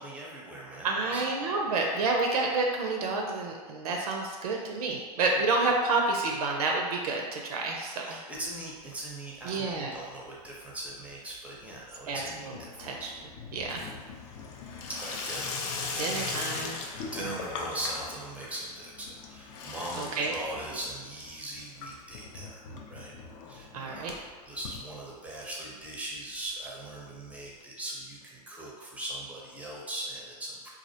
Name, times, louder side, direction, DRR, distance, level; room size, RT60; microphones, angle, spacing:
voice 1, 0.0-1.2 8.0-13.1 14.9-15.6 16.7-23.1 23.5-30.7, right 1 dB, 5° right, -4 dB, 0.5 m, -40 dB
voice 2, 0.8-8.2 9.4-9.9 12.1-12.2 12.8-13.1 13.5-13.8 16.0-16.8 20.0-20.3 23.7-24.1, right 3 dB, 70° right, 0 dB, 0.4 m, -29 dB
Water tap faucet / Sink (filling or washing), 8.4-9.1 9.4-10.0 10.3-25.5 25.9-26.0 26.2-26.3 26.5-26.6 27.6-27.7, left 4 dB, 50° left, 0.4 m, -40 dB
2.3 x 2.1 x 2.6 m, 1.5 s
hypercardioid pair, 100°, 20 cm